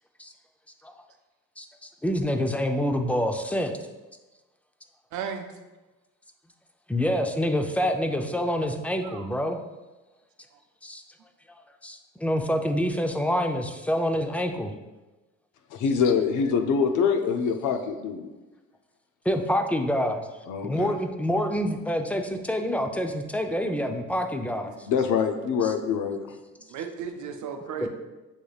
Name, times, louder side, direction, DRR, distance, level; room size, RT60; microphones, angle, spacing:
voice 1, 1.6-3.8 6.9-9.6 10.8-11.0 11.5-14.7 19.3-20.3 20.6-24.7 27.8-27.9, equal, 5° left, 5 dB, 0.4 m, -27 dB
voice 2, 5.1-5.5 9.0-9.3 24.6-24.9 26.7-27.9, right 7 dB, 75° right, 5 dB, 0.6 m, -35 dB
voice 3, 15.7-18.3 20.5-20.9 24.9-26.2, left 6 dB, 80° left, 6 dB, 0.6 m, -24 dB
7.1 x 3.2 x 2.3 m, 1.1 s
cardioid pair, 90°, 30 cm